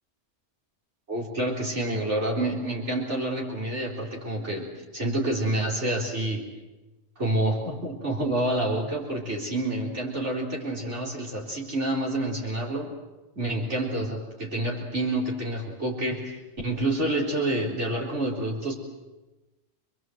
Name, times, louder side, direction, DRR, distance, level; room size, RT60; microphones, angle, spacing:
voice 1, 1.1-4.7 4.9-6.4 7.2-12.9 13.4-18.7, right 1 dB, 90° right, -1 dB, 4.4 m, -28 dB
27.5 x 21.5 x 7.9 m, 1.1 s
omnidirectional pair, 1.2 m